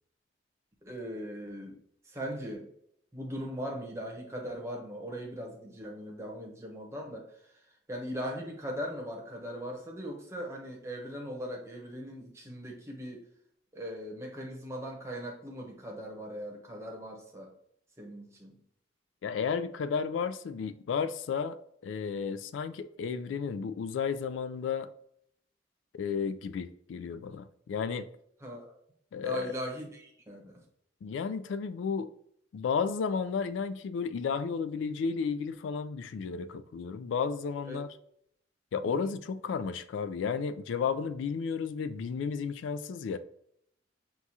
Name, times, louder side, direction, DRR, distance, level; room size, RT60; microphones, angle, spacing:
voice 1, 0.8-2.7 3.1-7.6 7.9-13.2 13.7-17.5 18.0-18.6 28.4-28.7 29.2-30.6 37.7-37.8 38.8-39.1, equal, 15° right, 0.8 m, -39 dB
voice 2, 19.2-21.6 21.8-24.9 25.9-28.1 29.1-29.5 31.0-32.1 32.5-37.9 38.7-43.2, left 6 dB, 80° left, 0.3 m, -33 dB
6.0 x 2.3 x 2.7 m
head